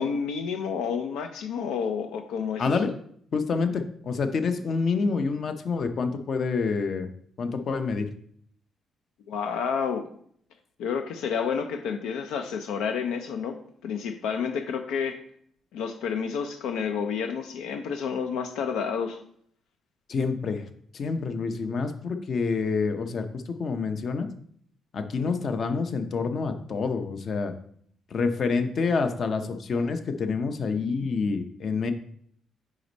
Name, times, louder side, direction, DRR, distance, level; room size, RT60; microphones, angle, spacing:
voice 1, 0.0-2.7 9.3-10.1 10.8-13.6 13.8-15.2 15.7-19.2, left 6 dB, 90° left, 6 dB, 0.5 m, -30 dB
voice 2, 2.6-2.9 3.3-7.1 7.4-8.1 20.1-20.7 20.9-24.3 24.9-27.5 28.1-31.9, left 4 dB, 50° left, 8 dB, 0.7 m, -27 dB
5.2 x 4.8 x 4.0 m, 0.63 s
cardioid pair, 90°, 0 cm